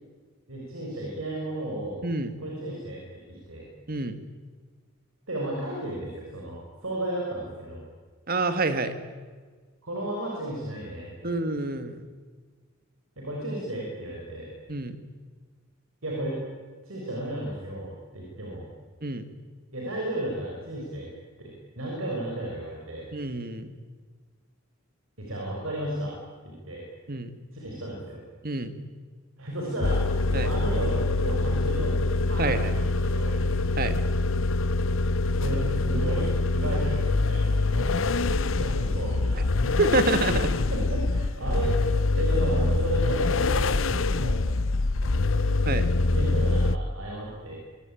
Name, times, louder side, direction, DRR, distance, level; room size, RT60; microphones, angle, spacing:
voice 1, 0.5-2.0 2.4-3.6 5.3-7.8 9.8-11.3 13.2-14.5 16.0-16.4 16.8-18.7 19.7-21.1 21.4-23.1 25.2-26.2 26.4-26.8 27.5-28.2 29.4-30.0 30.4-33.4 35.4-36.3 36.5-39.4 40.7-41.8 42.1-44.4 45.0-45.5 46.1-47.5, right 1 dB, 75° right, -2 dB, 6.3 m, -34 dB
voice 2, 2.0-2.3 3.9-4.2 8.3-8.9 11.2-12.1 14.7-15.0 19.0-19.2 23.1-23.7 27.1-27.3 28.4-28.7 30.3-30.5 32.4-32.8 33.8-34.0 39.8-40.5 45.7-45.9, right 2 dB, 45° right, 10 dB, 2.0 m, -27 dB
sound 1, 29.8-46.8, left 2 dB, 65° left, 0.8 m, -25 dB
23.5 x 23.0 x 9.3 m, 1.5 s
head